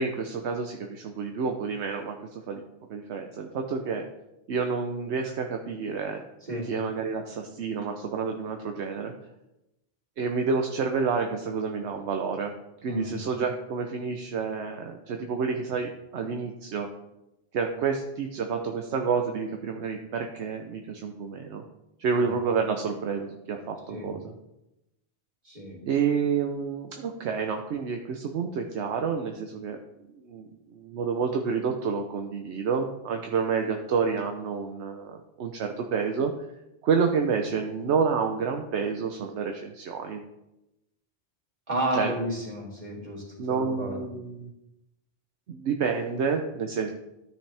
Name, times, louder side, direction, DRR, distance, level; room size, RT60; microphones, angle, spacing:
voice 1, 0.0-2.6 2.9-4.0 4.5-6.2 6.6-9.1 10.2-12.5 12.8-16.9 17.5-21.6 22.0-24.3 25.8-29.8 30.2-36.3 36.8-40.2 41.9-42.1 43.4-44.5 45.5-46.9, right 5 dB, 70° right, 4 dB, 1.0 m, -29 dB
voice 2, 12.9-13.2 23.9-24.1 25.5-25.8 41.7-43.2 43.5-44.1, right 1 dB, 40° right, -4 dB, 3.5 m, -31 dB
12.5 x 6.3 x 3.4 m, 0.92 s
omnidirectional pair, 1.2 m